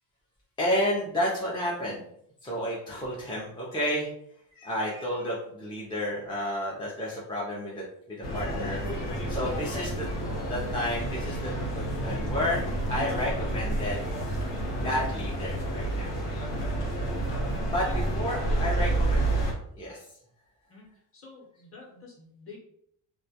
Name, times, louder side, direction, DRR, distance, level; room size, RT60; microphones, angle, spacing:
voice 1, 0.6-2.0 2.4-4.1 4.5-14.0 14.8-16.1 16.9-19.2 19.8-20.1, left 1 dB, 15° left, -5 dB, 0.3 m, -31 dB
sound 1, 8.2-19.5, right 1 dB, 85° left, 0.9 m, -30 dB
voice 2, 18.3-19.3 20.7-20.9 21.1-22.6, left 2 dB, 30° left, -2 dB, 0.7 m, -47 dB
2.2 x 2.1 x 2.7 m, 0.71 s
cardioid pair, 135°, 43 cm